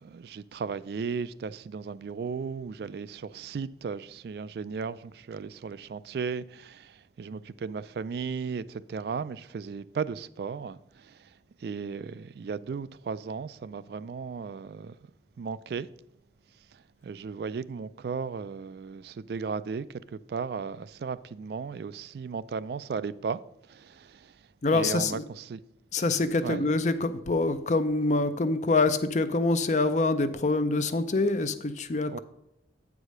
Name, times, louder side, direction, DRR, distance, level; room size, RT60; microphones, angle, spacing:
voice 1, 0.0-11.3 11.6-15.0 15.4-15.9 16.7-23.4 23.7-24.4 24.7-25.6 26.4-26.6 32.1-32.2, right 5 dB, 60° right, 0.3 m, -35 dB
voice 2, 24.6-25.3 25.9-32.2, left 3 dB, 40° left, 0.5 m, -25 dB
8.3 x 4.9 x 6.4 m
head